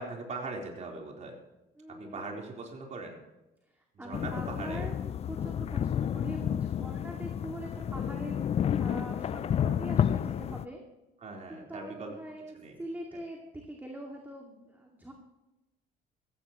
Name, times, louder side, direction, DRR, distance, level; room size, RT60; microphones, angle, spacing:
voice 1, 0.0-1.4 2.0-3.2 3.9-4.9 11.2-12.1 12.5-12.8, right 3 dB, 45° right, 0 dB, 4.0 m, -40 dB
voice 2, 1.8-2.4 3.7-10.8 11.5-15.1, right 1 dB, 10° right, 0 dB, 2.3 m, -43 dB
sound 1, 4.1-10.6, left 9 dB, 40° left, 0.4 m, -31 dB
15.5 x 15.5 x 3.1 m, 0.98 s
cardioid pair, 110°, 17 cm